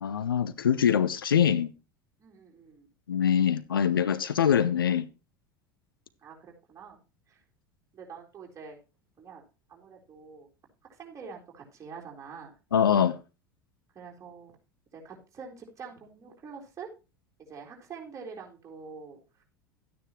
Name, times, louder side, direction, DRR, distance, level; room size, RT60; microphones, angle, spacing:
voice 1, 0.0-1.7 3.1-5.1 12.7-13.2, left 8 dB, 80° left, 0.8 m, -24 dB
voice 2, 2.2-2.9 6.2-7.0 7.3-7.4 7.9-8.8 9.2-9.4 9.7-10.5 10.9-12.5 13.9-14.5 14.9-16.9 17.4-19.4, right 5 dB, 25° right, 4.0 m, -46 dB
12.5 x 9.5 x 3.0 m
figure-of-eight pair, 80°, 12 cm